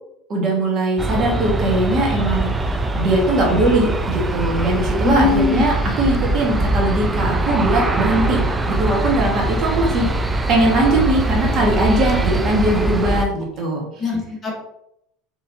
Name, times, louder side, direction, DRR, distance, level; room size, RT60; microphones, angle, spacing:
voice 1, 0.3-8.4 8.7-10.1 10.5-13.8, right 1 dB, 45° right, -1 dB, 1.6 m, -20 dB
Aircraft, 1.0-13.3, right 2 dB, 15° right, 0.4 m, -22 dB
voice 2, 5.0-5.6 14.0-14.5, left 5 dB, 25° left, -1 dB, 1.3 m, -20 dB
4.5 x 3.6 x 2.7 m, 0.77 s
supercardioid pair, 100°, 0 cm